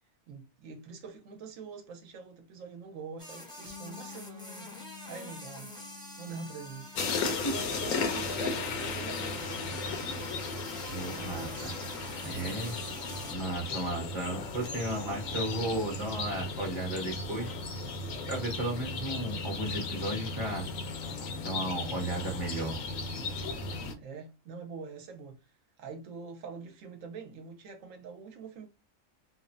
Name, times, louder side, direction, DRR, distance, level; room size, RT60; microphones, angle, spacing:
voice 1, 0.3-4.7 5.0-5.7 6.2-10.4 10.9-11.8 12.2-13.0 24.0-28.7, right 5 dB, 75° right, 1.0 m, -45 dB
sound 1, 3.2-13.3, left 1 dB, 5° left, 0.7 m, -46 dB
Bass guitar, 3.7-9.9, left 9 dB, 60° left, 0.6 m, -52 dB
sound 2, 6.9-23.9, left 3 dB, 85° left, 1.0 m, -35 dB
voice 2, 10.9-11.7 12.2-12.8 13.3-17.6 18.3-20.7 21.4-22.8, right 1 dB, 25° right, 0.9 m, -34 dB
3.0 x 2.1 x 2.5 m
omnidirectional pair, 1.4 m